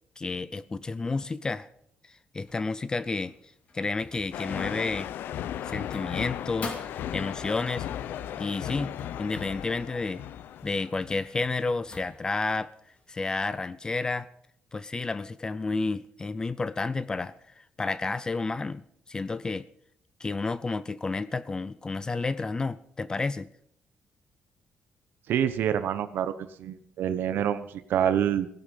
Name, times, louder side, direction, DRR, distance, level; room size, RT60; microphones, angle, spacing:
voice 1, 0.2-1.7 2.0-3.3 3.7-5.1 5.7-7.9 8.4-10.2 10.6-12.7 13.1-14.3 14.7-18.8 19.1-19.7 20.2-23.5, left 3 dB, 20° left, 16 dB, 0.5 m, -31 dB
sound 1, 2.4-13.6, left 3 dB, 40° left, 2.7 m, -48 dB
sound 2, 4.3-11.4, left 10 dB, 75° left, 0.6 m, -36 dB
voice 2, 25.3-28.5, right 9 dB, 70° right, 12 dB, 1.0 m, -27 dB
16.5 x 11.5 x 5.5 m, 0.69 s
cardioid pair, 140°, 4 cm